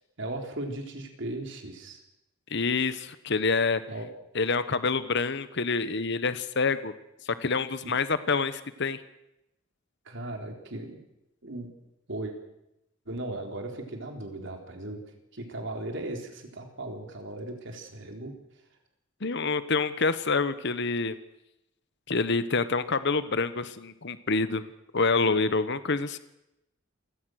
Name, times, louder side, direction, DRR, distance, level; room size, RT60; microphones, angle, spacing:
voice 1, 0.2-2.0 3.9-4.1 7.8-7.9 10.1-11.0 11.4-11.7 12.1-12.3 13.1-18.3, right 1 dB, 60° right, 4 dB, 3.9 m, -37 dB
voice 2, 2.5-3.8 4.3-6.9 7.4-9.0 19.2-21.2 22.1-24.6 24.9-26.2, left 4 dB, 60° left, 13 dB, 1.2 m, -27 dB
28.0 x 17.0 x 6.5 m, 0.88 s
head